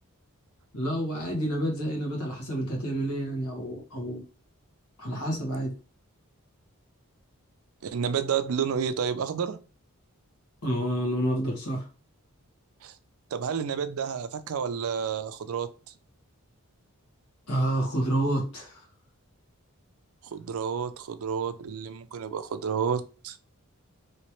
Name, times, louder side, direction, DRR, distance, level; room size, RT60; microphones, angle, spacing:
voice 1, 0.7-4.2 5.0-5.7 10.6-11.9 17.5-18.8, right 1 dB, 85° left, 0 dB, 1.5 m, -29 dB
voice 2, 7.8-9.6 12.8-12.9 13.3-15.7 20.3-23.4, right 7 dB, 70° right, 11 dB, 0.4 m, -30 dB
3.1 x 3.1 x 3.0 m, 0.34 s
head